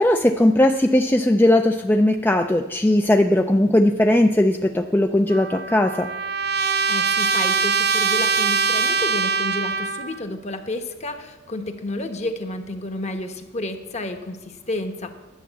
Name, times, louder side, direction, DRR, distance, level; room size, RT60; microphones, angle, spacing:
voice 1, 0.0-6.1, left 1 dB, 10° left, 5 dB, 0.4 m, -18 dB
Trumpet, 5.3-10.2, right 5 dB, 55° right, 0.6 m, -22 dB
voice 2, 6.9-15.1, left 2 dB, 35° left, 7 dB, 1.0 m, -31 dB
11.0 x 7.1 x 8.2 m, 1.1 s
head